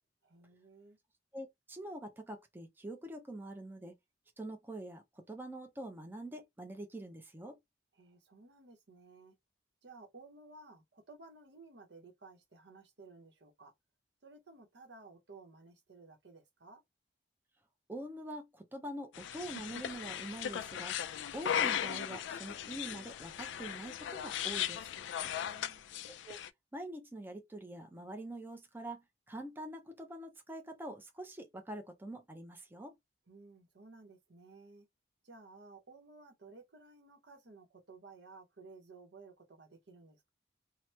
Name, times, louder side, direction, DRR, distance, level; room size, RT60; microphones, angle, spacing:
voice 1, 0.2-1.0 7.9-9.4 9.8-13.7 14.2-16.8 25.2-25.9 33.3-34.9 35.2-40.3, right 3 dB, 70° right, 0.9 m, -56 dB
voice 2, 1.3-4.0 4.4-7.6 17.9-21.0 21.3-24.9 26.3-26.4 26.7-32.9, right 1 dB, 10° right, 0.5 m, -45 dB
sound 1, 19.1-26.5, left 9 dB, 85° left, 0.3 m, -37 dB
2.9 x 2.0 x 3.0 m
head